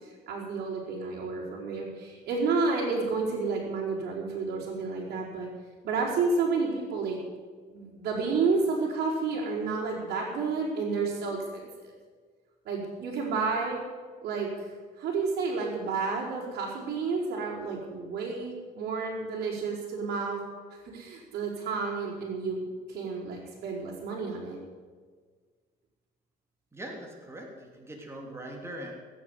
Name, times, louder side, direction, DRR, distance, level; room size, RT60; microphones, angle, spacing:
voice 1, 0.0-5.5 5.8-7.2 7.7-11.9 12.6-13.8 14.2-20.4 20.8-24.6, right 4 dB, 65° right, -5 dB, 4.7 m, -31 dB
voice 2, 26.7-28.9, right 1 dB, 15° right, 0 dB, 3.1 m, -41 dB
19.0 x 9.3 x 8.1 m, 1.5 s
cardioid pair, 110°, 17 cm